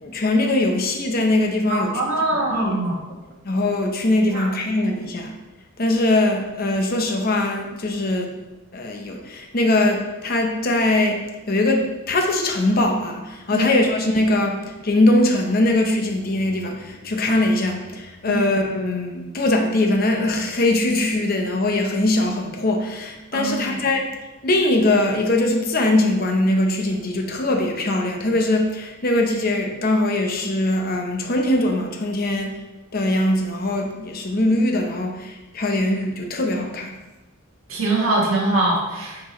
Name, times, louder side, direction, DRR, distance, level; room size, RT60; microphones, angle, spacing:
voice 1, 0.0-2.0 2.5-2.8 3.4-5.3 5.8-8.3 8.7-24.2 24.4-32.5 32.9-36.9, left 1 dB, 45° left, 2 dB, 0.7 m, -21 dB
voice 2, 1.7-2.9 4.3-4.5 13.5-13.7 18.2-18.4 23.3-23.8 37.7-39.2, right 2 dB, 80° right, -3 dB, 1.6 m, -23 dB
7.2 x 4.3 x 3.1 m, 1.1 s
head